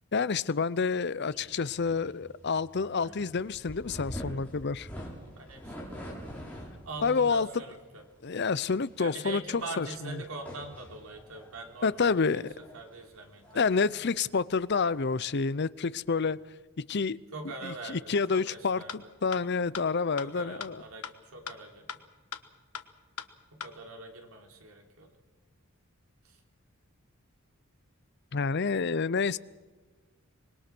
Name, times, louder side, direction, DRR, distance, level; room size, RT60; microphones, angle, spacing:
voice 1, 0.1-4.9 7.0-7.5 8.2-10.2 11.8-12.4 13.5-16.4 16.9-17.2 17.6-18.8 19.2-20.8 28.3-29.4, left 5 dB, 50° left, 18 dB, 0.6 m, -28 dB
sound 1, 1.3-15.2, equal, 5° left, 6.1 m, -46 dB
voice 2, 3.0-3.4 5.3-8.0 9.0-12.4 12.7-14.1 16.1-16.3 17.3-19.1 20.2-22.0 23.5-25.2 26.2-26.4, right 3 dB, 70° right, 3 dB, 3.7 m, -44 dB
sound 2, 18.5-18.6 18.9-19.0 19.3-19.4 19.7-19.8 20.2-20.3 20.6-20.7 21.0-21.1 21.5-21.6 21.9-22.0 22.3-22.4 22.7-22.8 23.2-23.3 23.6-23.7, left 7 dB, 75° left, 1.4 m, -38 dB
25.5 x 21.5 x 6.1 m, 1.3 s
head